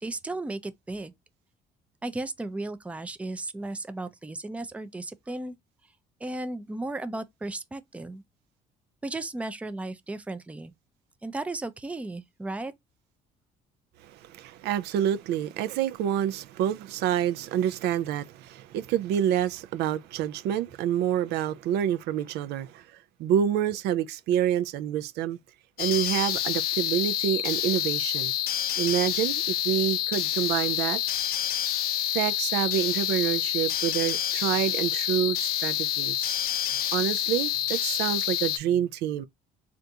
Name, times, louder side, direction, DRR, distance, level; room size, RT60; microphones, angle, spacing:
voice 1, 0.0-1.1 2.0-5.6 6.2-8.2 9.0-10.7 11.2-12.7, right 2 dB, 10° right, 0.4 m, -35 dB
voice 2, 14.0-22.9 23.2-25.4 25.8-28.3 28.8-31.0 32.1-36.4 36.9-39.3, right 10 dB, 80° right, 0.5 m, -27 dB
sound 1, 25.8-38.6, left 11 dB, 65° left, 0.5 m, -28 dB
3.4 x 2.5 x 2.7 m
cardioid pair, 110°, 17 cm